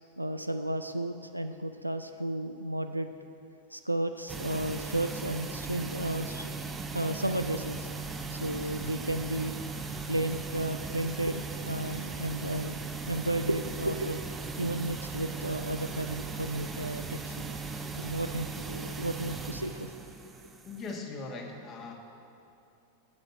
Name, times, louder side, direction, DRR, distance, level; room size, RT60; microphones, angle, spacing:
voice 1, 0.2-3.1 3.7-6.5 6.9-7.9 8.3-9.5 10.1-12.8 13.1-14.2 14.6-17.6 18.0-19.9, right 1 dB, 85° right, 8 dB, 0.3 m, -33 dB
sound 1, 4.3-21.0, right 4 dB, 15° right, 0.7 m, -38 dB
voice 2, 20.6-21.9, left 3 dB, 30° left, 1 dB, 1.4 m, -39 dB
8.2 x 6.7 x 8.1 m, 2.7 s
figure-of-eight pair, 90°, 0 cm